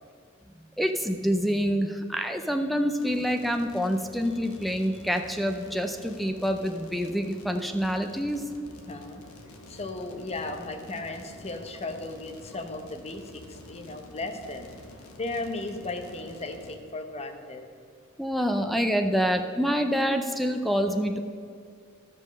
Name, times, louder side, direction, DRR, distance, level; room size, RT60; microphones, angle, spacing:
voice 1, 0.8-8.4 18.2-21.2, equal, ahead, 6 dB, 0.4 m, -27 dB
sound 1, 3.0-16.7, left 1 dB, 90° left, 1.3 m, -48 dB
voice 2, 8.9-9.2 9.7-14.7 15.2-17.7, left 2 dB, 30° left, 5 dB, 0.8 m, -36 dB
12.5 x 5.3 x 6.3 m, 2.2 s
head